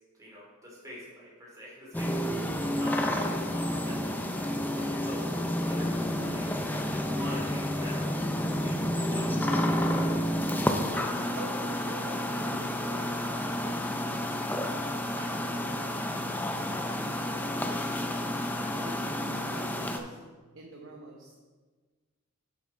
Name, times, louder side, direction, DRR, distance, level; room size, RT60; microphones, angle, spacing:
voice 1, 0.1-10.7 11.0-11.1, equal, 15° right, -5 dB, 2.5 m, -46 dB
sound 1, 1.9-20.0, left 1 dB, 10° left, 0.4 m, -30 dB
voice 2, 11.4-13.8 15.2-18.5 18.7-20.2 20.5-21.4, right 2 dB, 60° right, -1 dB, 0.9 m, -45 dB
7.2 x 6.3 x 4.6 m, 1.4 s
head